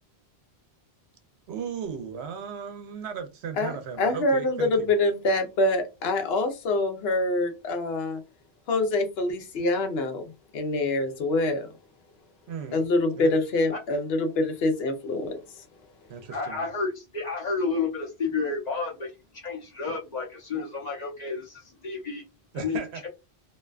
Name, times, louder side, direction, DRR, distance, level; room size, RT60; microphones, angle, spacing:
voice 1, 1.5-4.9 12.5-12.8 13.2-13.3 16.1-16.6 22.5-23.0, right 7 dB, 85° right, 0.9 m, -36 dB
voice 2, 3.6-8.2 8.7-10.2 10.5-11.7 12.7-15.4, left 2 dB, 75° left, 0.9 m, -25 dB
voice 3, 16.3-19.1 19.4-22.2 22.5-23.1, left 4 dB, 45° left, 0.8 m, -31 dB
2.6 x 2.2 x 2.3 m
omnidirectional pair, 1.1 m